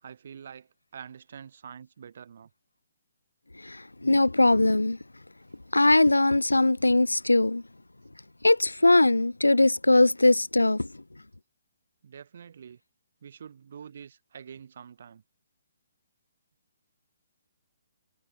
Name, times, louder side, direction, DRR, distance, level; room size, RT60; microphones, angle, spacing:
voice 1, 0.0-2.5 12.0-12.8 13.2-15.2, right 7 dB, 50° right, 4.2 m, -46 dB
voice 2, 3.6-5.0 5.7-7.6 8.4-10.9, left 2 dB, 80° left, 0.4 m, -21 dB
figure-of-eight pair, 130°, 0 cm